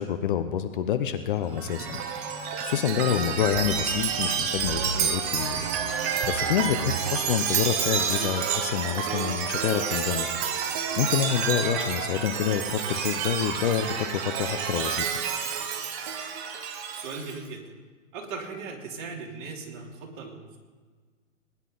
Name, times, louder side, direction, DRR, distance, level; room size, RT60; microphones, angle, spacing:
voice 1, 0.0-2.0 2.6-5.6 6.3-10.3 11.0-15.1, left 9 dB, 40° left, 10 dB, 0.8 m, -27 dB
Chime, 1.5-17.4, right 7 dB, 15° right, 0.4 m, -29 dB
voice 2, 2.9-3.2 6.0-6.3 16.9-17.7 18.1-20.6, right 4 dB, 40° right, -1 dB, 3.1 m, -39 dB
21.0 x 10.5 x 3.9 m, 1.5 s
hypercardioid pair, 145°, 40 cm